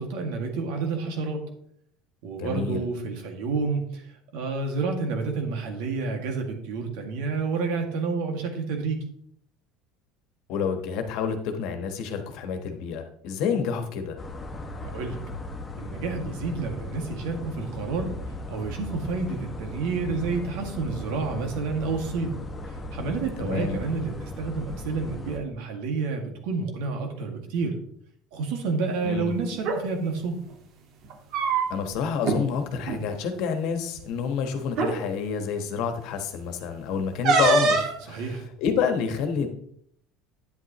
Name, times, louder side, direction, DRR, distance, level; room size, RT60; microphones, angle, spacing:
voice 1, 0.0-1.5 2.2-9.0 14.8-15.2 15.8-18.1 18.5-22.4 22.7-27.8 28.3-30.4 38.1-38.4, right 4 dB, 75° right, 3 dB, 1.9 m, -29 dB
voice 2, 2.4-2.9 10.5-14.2 23.4-23.8 29.0-29.3 31.4-39.5, left 6 dB, 65° left, 7 dB, 1.3 m, -29 dB
sound 1, 14.2-25.4, left 1 dB, 20° left, 1.5 m, -37 dB
sound 2, 29.5-29.8 31.0-31.9 32.2-32.4 32.8-33.0 34.0-34.1 34.7-35.0 37.2-38.0, right 3 dB, 55° right, 1.6 m, -23 dB
9.2 x 8.2 x 3.0 m, 0.69 s
supercardioid pair, 120°, 0 cm